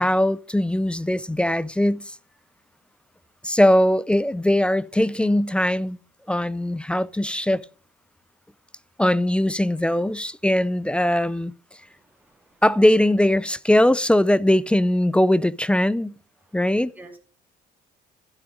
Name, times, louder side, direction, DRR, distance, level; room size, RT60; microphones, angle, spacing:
voice 1, 0.0-2.2 3.4-6.0 6.3-7.6 9.0-11.5 12.6-16.2 16.5-16.9, left 1 dB, 5° left, 0.4 m, -20 dB
voice 2, 11.8-12.6 16.4-16.5 16.9-17.2, right 2 dB, 10° right, 2.5 m, -49 dB
12.0 x 9.0 x 5.2 m
cardioid pair, 110°, 17 cm